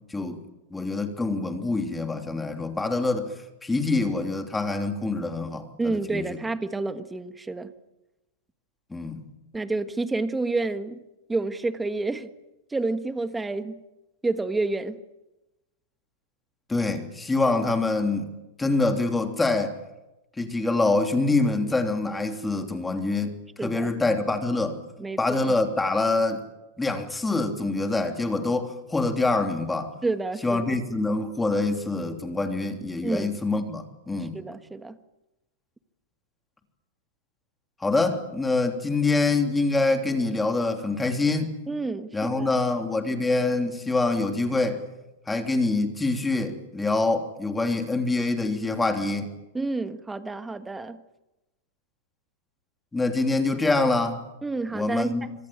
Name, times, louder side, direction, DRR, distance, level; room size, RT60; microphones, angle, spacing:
voice 1, 0.1-0.4 0.7-3.3 3.6-6.3 8.9-9.2 16.7-18.3 18.6-19.8 20.4-23.4 23.6-24.8 25.2-26.4 26.8-29.9 30.4-34.4 37.8-41.5 42.1-44.8 45.3-49.3 52.9-54.2 54.7-55.3, left 3 dB, 10° left, 5 dB, 3.1 m, -25 dB
voice 2, 5.8-7.7 9.5-11.0 11.3-12.3 12.7-13.8 14.2-15.0 23.6-23.9 25.0-25.5 30.0-30.8 33.0-33.4 34.3-35.0 41.7-42.6 49.5-51.0 54.4-55.3, right 3 dB, 10° right, 10 dB, 1.5 m, -29 dB
25.5 x 25.0 x 9.0 m, 1.0 s
supercardioid pair, 145°, 0 cm